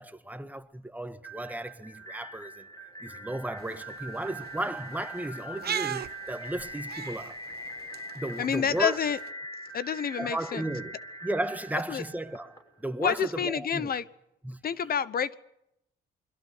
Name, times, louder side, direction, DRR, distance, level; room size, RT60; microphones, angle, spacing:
voice 1, 0.0-2.7 3.0-7.4 8.1-9.0 10.2-10.9 11.2-13.9 14.4-14.6, right 1 dB, 10° right, 1.5 m, -35 dB
sound 1, 1.2-13.0, right 1 dB, 20° left, 6.9 m, -42 dB
sound 2, 3.6-9.3, right 8 dB, 55° right, 1.0 m, -40 dB
voice 2, 8.4-9.2 9.7-10.6 11.9-12.0 13.0-14.0 14.6-15.4, left 7 dB, 50° left, 1.0 m, -28 dB
28.5 x 22.0 x 5.6 m
cardioid pair, 90°, 20 cm